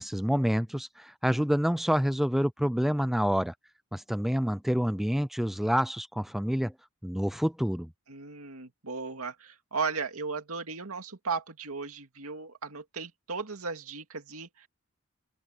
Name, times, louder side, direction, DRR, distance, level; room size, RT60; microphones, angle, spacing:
voice 1, 0.0-3.5 3.9-6.7 7.0-7.9, equal, ahead, 0.3 m, -27 dB
voice 2, 8.1-14.7, right 4 dB, 80° right, 2.3 m, -36 dB
open air
head